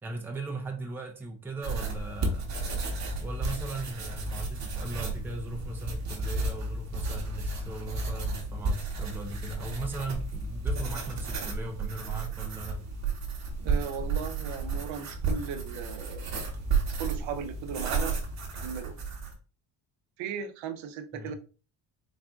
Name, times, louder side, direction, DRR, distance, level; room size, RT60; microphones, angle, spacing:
voice 1, 0.0-2.5 3.2-12.8 21.1-21.3, right 3 dB, 5° right, 0.5 m, -38 dB
sound 1, 1.6-19.3, right 3 dB, 35° right, 1.0 m, -32 dB
voice 2, 13.6-16.3 17.0-18.1 18.6-18.9 20.2-21.3, right 7 dB, 80° right, 0.7 m, -37 dB
4.1 x 2.5 x 3.4 m
cardioid pair, 170°, 45 cm